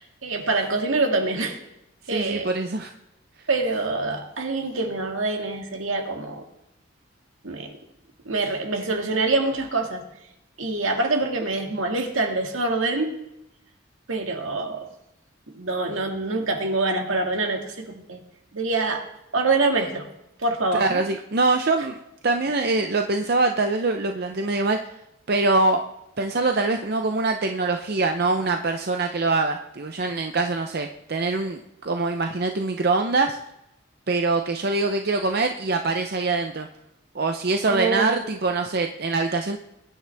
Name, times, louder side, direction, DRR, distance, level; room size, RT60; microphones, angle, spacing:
voice 1, 0.0-1.6 2.1-2.5 3.5-6.5 7.4-7.8 8.3-10.0 10.6-13.2 14.1-14.9 15.5-18.2 18.5-19.1 19.3-20.1 20.4-21.0 37.7-38.3, right 3 dB, 75° right, 3 dB, 2.0 m, -25 dB
voice 2, 2.1-2.9 20.7-22.0 22.2-24.8 25.3-25.8 26.2-33.4 34.1-36.7 37.1-39.6, right 3 dB, 50° right, 5 dB, 0.6 m, -24 dB
21.5 x 10.0 x 3.5 m, 0.85 s
head